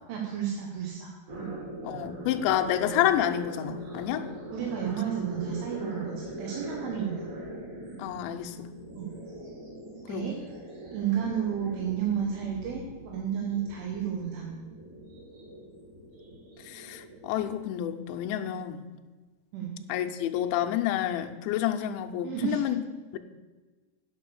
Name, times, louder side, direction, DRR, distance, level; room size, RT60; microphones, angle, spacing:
voice 1, 0.1-1.5 4.5-7.3 9.0-9.1 10.1-10.4 10.9-14.5 19.5-19.8 22.2-22.6, right 8 dB, 80° right, 0 dB, 3.5 m, -32 dB
sound 1, 1.3-17.6, right 1 dB, 50° right, 2.6 m, -42 dB
voice 2, 1.8-4.3 8.0-8.7 10.1-10.4 16.7-18.8 19.9-22.8 23.1-23.2, left 11 dB, 85° left, 5 dB, 2.7 m, -29 dB
9.1 x 6.9 x 6.7 m, 1.3 s
omnidirectional pair, 5.7 m